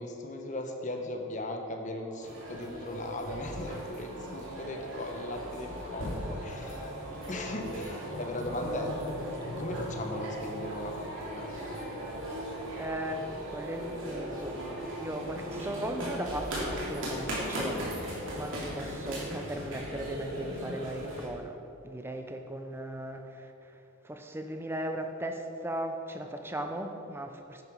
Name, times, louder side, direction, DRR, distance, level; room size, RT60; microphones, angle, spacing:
voice 1, 0.0-6.9 7.3-8.9 9.6-11.5, left 1 dB, 35° left, 3 dB, 1.1 m, -38 dB
sound 1, 1.9-17.6, right 2 dB, 85° right, 1.5 m, -45 dB
sound 2, 2.2-21.3, equal, 65° right, 2.9 m, -38 dB
voice 2, 12.8-14.6 14.9-21.6 21.8-23.7 24.0-27.6, right 1 dB, 10° right, 5 dB, 0.7 m, -37 dB
10.5 x 9.5 x 4.7 m, 2.8 s
head